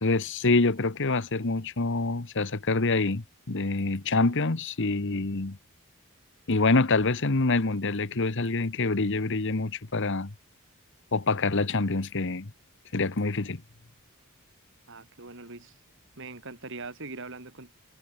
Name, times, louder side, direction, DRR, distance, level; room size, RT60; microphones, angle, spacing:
voice 1, 0.0-5.6 6.5-10.3 11.1-12.5 12.9-13.6, left 3 dB, 55° left, 1.2 m, -26 dB
voice 2, 14.9-15.7 16.2-17.7, right 3 dB, 60° right, 3.5 m, -41 dB
head